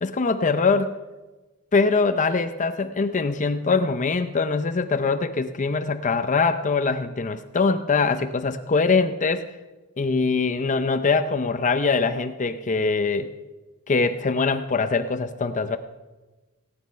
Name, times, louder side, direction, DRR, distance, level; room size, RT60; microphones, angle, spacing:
voice 1, 0.0-0.9 1.7-9.5 10.0-13.3 13.9-15.8, left 4 dB, 35° left, 9 dB, 0.6 m, -23 dB
17.5 x 9.7 x 5.6 m, 1.2 s
head